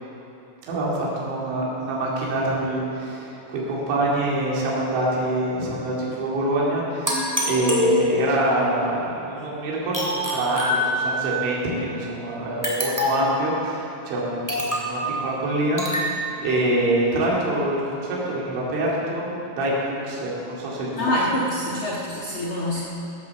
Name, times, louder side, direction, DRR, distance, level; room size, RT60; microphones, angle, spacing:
voice 1, 0.7-20.9, right 1 dB, 80° right, -5 dB, 4.8 m, -25 dB
sound 1, 7.1-8.5 9.9-11.4 12.6-13.4 14.5-15.0 15.8-16.1, left 1 dB, 5° right, 1.7 m, -25 dB
voice 2, 21.0-22.8, left 1 dB, 90° left, -6 dB, 1.1 m, -25 dB
16.5 x 9.3 x 7.0 m, 2.9 s
omnidirectional pair, 5.2 m